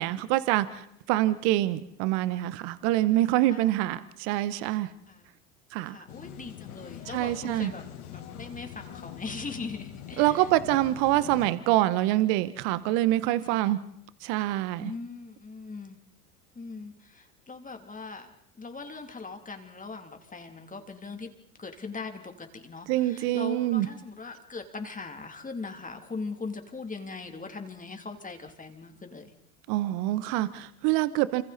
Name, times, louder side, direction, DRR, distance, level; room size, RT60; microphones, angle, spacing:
voice 1, 0.0-4.9 5.7-6.0 7.1-7.7 10.2-13.8 14.2-14.9 22.9-23.9 29.7-31.4, right 15 dB, 55° right, 15 dB, 1.3 m, -25 dB
voice 2, 3.2-3.7 5.1-5.3 5.8-7.8 8.1-10.5 13.5-13.7 14.8-16.0 16.5-18.3 18.6-21.3 21.6-29.3, left 4 dB, 15° left, 5 dB, 3.2 m, -40 dB
sound 1, 6.1-11.5, left 10 dB, 70° left, 5.5 m, -43 dB
28.5 x 26.5 x 4.3 m, 0.74 s
hypercardioid pair, 80°, 45 cm